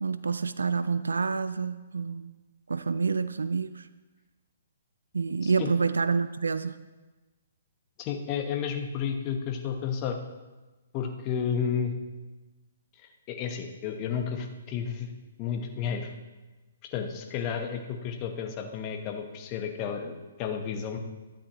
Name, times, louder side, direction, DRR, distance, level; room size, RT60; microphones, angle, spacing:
voice 1, 0.0-2.3 2.7-3.9 5.1-6.8, right 5 dB, 80° right, 14 dB, 0.4 m, -28 dB
voice 2, 5.4-5.7 8.0-10.2 10.9-11.9 13.0-15.1 15.4-16.1 16.9-21.0, left 7 dB, 30° left, 4 dB, 1.1 m, -32 dB
13.0 x 8.5 x 3.0 m, 1.2 s
hypercardioid pair, 130°, 0 cm